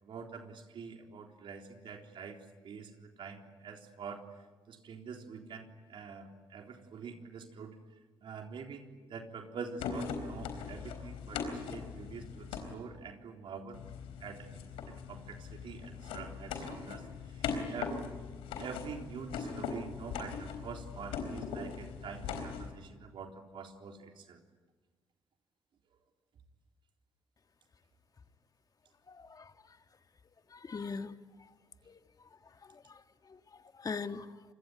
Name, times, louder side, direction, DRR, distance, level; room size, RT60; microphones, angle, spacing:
voice 1, 0.0-4.3 4.7-7.8 8.2-13.8 14.2-18.0 18.6-24.4, right 5 dB, 65° right, 3 dB, 3.8 m, -46 dB
sound 1, 9.8-12.7 13.7-22.7, left 5 dB, 90° left, 3.9 m, -40 dB
voice 2, 29.1-29.8 30.5-31.5 31.9-34.4, left 5 dB, 45° left, 8 dB, 1.8 m, -43 dB
27.5 x 22.0 x 9.7 m, 1.3 s
supercardioid pair, 60°, 9 cm